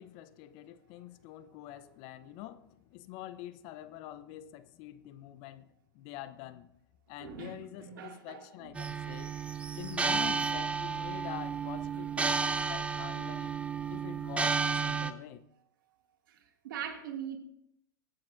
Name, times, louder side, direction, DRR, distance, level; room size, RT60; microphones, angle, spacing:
voice 1, 0.0-5.7 5.9-6.7 7.1-9.3 9.7-13.5 13.9-15.4, left 13 dB, 45° left, 12 dB, 0.8 m, -46 dB
voice 2, 7.2-8.8 16.3-17.4, right 8 dB, 70° right, 3 dB, 2.3 m, -42 dB
sound 1, 8.8-15.1, right 5 dB, 10° right, 0.6 m, -32 dB
24.0 x 8.8 x 2.6 m, 0.79 s
hypercardioid pair, 115°, 12 cm